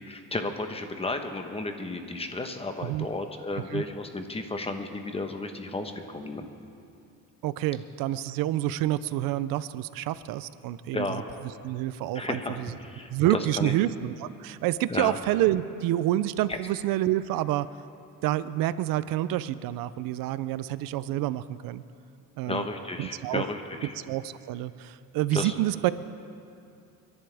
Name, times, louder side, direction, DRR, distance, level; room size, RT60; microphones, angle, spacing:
voice 1, 0.1-6.5 10.9-11.3 12.1-13.7 14.9-15.1 16.5-16.6 22.5-23.9 25.3-25.5, left 2 dB, 15° left, 6 dB, 1.1 m, -33 dB
voice 2, 7.4-11.2 11.6-12.7 13.1-17.7 18.2-21.8 22.4-22.7 23.0-23.4 24.1-25.9, right 14 dB, 85° right, 15 dB, 0.6 m, -28 dB
29.5 x 11.0 x 3.5 m, 2.6 s
cardioid pair, 125°, 33 cm